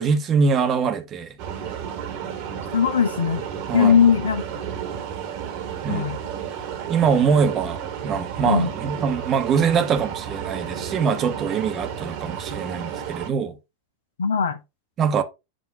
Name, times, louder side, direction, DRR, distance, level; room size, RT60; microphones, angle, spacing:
voice 1, 0.0-1.4 3.7-4.0 5.8-6.1 6.9-13.6 15.0-15.2, right 6 dB, 30° right, 1.0 m, -23 dB
sound 1, 1.4-13.3, right 8 dB, 45° right, 1.3 m, -32 dB
voice 2, 2.7-3.4 3.7-4.4 5.9-6.2 8.5-8.7 14.2-14.6, left 7 dB, 65° left, 0.7 m, -19 dB
7.6 x 2.7 x 4.6 m
figure-of-eight pair, 90°, 0 cm